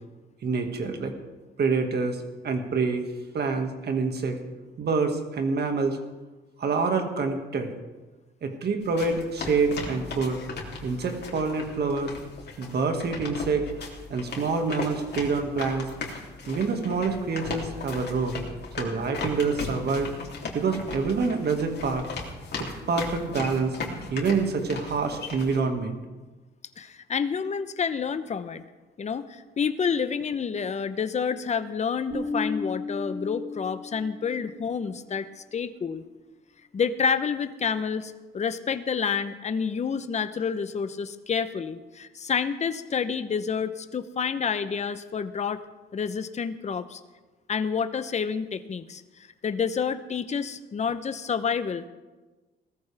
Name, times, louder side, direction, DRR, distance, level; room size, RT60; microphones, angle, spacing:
voice 1, 0.4-1.1 1.6-3.1 3.3-4.4 4.8-6.0 6.6-7.7 8.4-10.4 10.8-12.1 12.6-13.6 14.1-15.9 16.5-18.4 18.8-20.1 20.5-22.1 22.6-23.8 24.1-26.0, right 4 dB, 55° right, 5 dB, 2.0 m, -26 dB
sound 1, 8.8-25.6, left 4 dB, 55° left, 3.1 m, -37 dB
voice 2, 26.8-28.6 29.0-36.0 36.7-45.6 45.9-47.0 47.5-49.0 49.4-51.9, left 6 dB, 35° left, 11 dB, 0.8 m, -29 dB
Bass guitar, 32.1-34.5, left 3 dB, 80° right, 4.6 m, -34 dB
18.5 x 14.0 x 3.5 m, 1.2 s
cardioid pair, 90°, 20 cm